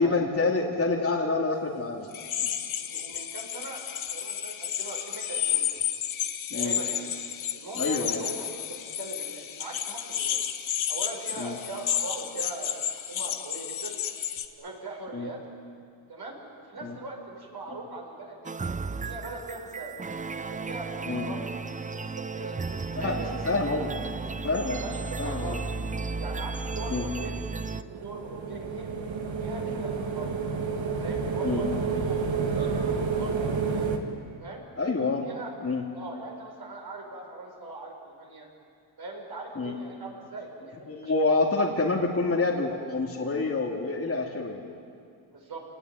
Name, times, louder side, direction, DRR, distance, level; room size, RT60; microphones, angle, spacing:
voice 1, 0.0-2.1 2.4-2.5 6.5-6.8 7.8-8.2 11.4-11.6 15.1-15.3 16.8-17.0 21.1-21.3 23.0-23.9 24.4-24.8 25.2-25.6 26.9-27.1 31.4-31.7 34.8-35.2 35.6-35.8 39.6-39.8 40.9-44.6, left 3 dB, 30° left, -2 dB, 2.6 m, -27 dB
sound 1, 2.1-14.5, left 10 dB, 70° left, 1.6 m, -32 dB
voice 2, 2.8-5.7 6.5-7.1 7.5-10.4 10.9-14.0 14.6-15.4 16.1-18.5 18.9-19.9 20.4-22.6 23.0-23.4 23.7-23.9 24.7-25.6 26.1-28.9 29.4-30.3 31.0-33.8 34.4-34.6 35.2-35.5 35.9-38.5 39.0-41.1 45.3-45.6, right 3 dB, 50° right, 0 dB, 5.6 m, -40 dB
sound 2, 18.5-27.8, right 4 dB, 15° right, 0.5 m, -34 dB
sound 3, 27.8-34.0, right 5 dB, 65° right, 2.7 m, -29 dB
28.5 x 19.0 x 9.7 m, 2.3 s
cardioid pair, 115°, 48 cm